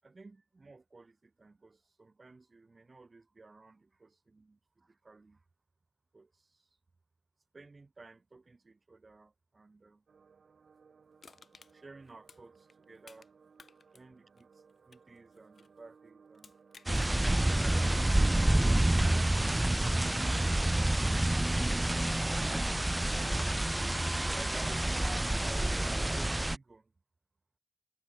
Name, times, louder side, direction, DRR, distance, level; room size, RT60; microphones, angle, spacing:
voice 1, 0.0-5.4 6.1-6.7 7.5-10.0 11.7-13.3 13.9-16.6 18.9-22.4 24.1-25.9 26.3-26.9, right 3 dB, 45° right, 7.2 m, -56 dB
sound 1, 10.1-20.2, right 5 dB, 80° right, 4.6 m, -62 dB
Crushing, 11.2-13.3 13.6-15.8 16.3-17.3 17.8-17.9, left 5 dB, 65° left, 3.2 m, -57 dB
sound 2, 16.9-26.6, right 1 dB, 20° right, 0.3 m, -28 dB
wide cardioid pair, 70°, 0 cm